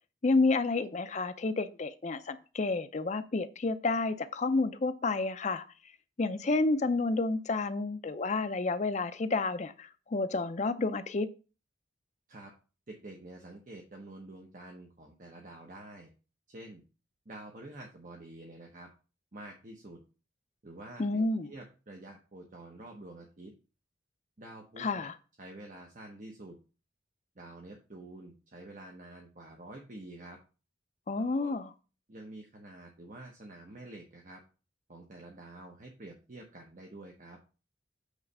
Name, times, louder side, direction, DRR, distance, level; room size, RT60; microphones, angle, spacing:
voice 1, 0.2-5.6 6.2-11.3 21.0-21.5 24.8-25.1 31.1-31.7, left 3 dB, 35° left, 0.5 m, -30 dB
voice 2, 12.9-16.1 16.5-16.8 17.3-18.9 19.3-20.0 20.6-23.5 24.4-25.1 25.4-26.6 27.4-30.4 31.2-31.6 32.1-34.4 34.9-37.4, right 2 dB, 40° right, 0.9 m, -48 dB
8.2 x 3.2 x 5.4 m
head